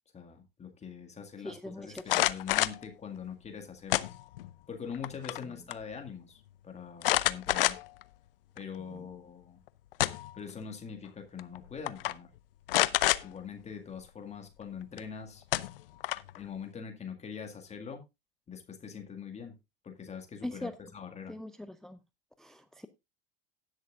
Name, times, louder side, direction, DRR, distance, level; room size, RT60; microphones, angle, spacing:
voice 1, 0.1-4.1 4.7-7.8 8.6-9.6 10.3-12.3 13.2-15.4 16.4-18.0 18.5-19.5 19.8-21.4, left 6 dB, 20° left, 4 dB, 2.0 m, -43 dB
voice 2, 1.4-2.2 5.4-5.6 8.9-9.1 20.4-20.8 21.3-22.0 22.4-22.9, left 1 dB, ahead, 13 dB, 0.5 m, -42 dB
sound 1, 2.0-2.8 3.9-4.5 4.9-5.4 5.7-5.8 7.0-8.0 8.6-8.7 9.7-10.4 11.4-11.6 11.9-12.1 12.7-13.2 15.0-15.1 15.5-16.4, left 15 dB, 65° left, 0.7 m, -28 dB
18.0 x 6.5 x 2.5 m, 0.24 s
hypercardioid pair, 85°, 30 cm